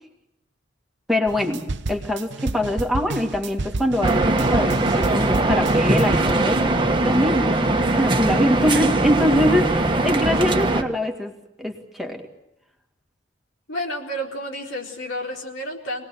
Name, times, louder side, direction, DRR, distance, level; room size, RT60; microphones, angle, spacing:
voice 1, 1.1-11.3 11.6-12.2, left 1 dB, ahead, 1 dB, 2.2 m, -24 dB
sound 1, 1.3-6.3, right 2 dB, 65° right, 0.9 m, -30 dB
sound 2, 4.0-10.8, right 2 dB, 25° right, 1.4 m, -21 dB
voice 2, 13.7-16.1, equal, 85° left, 0 dB, 4.3 m, -30 dB
26.0 x 19.5 x 7.7 m, 0.87 s
head